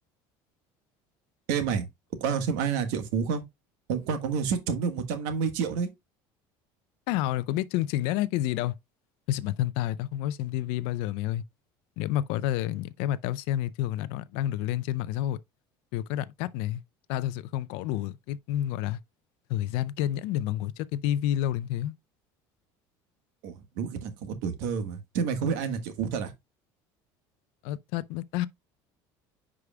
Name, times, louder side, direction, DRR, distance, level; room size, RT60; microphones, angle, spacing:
voice 1, 1.5-1.8 2.2-3.4 3.9-5.9 23.4-26.3, right 6 dB, 80° right, 1.4 m, -29 dB
voice 2, 7.1-8.7 9.3-11.4 12.0-15.4 15.9-16.8 17.1-19.0 19.5-21.9 27.6-28.5, left 13 dB, 70° left, 0.4 m, -29 dB
9.8 x 4.9 x 2.2 m
cardioid pair, 160°, 10 cm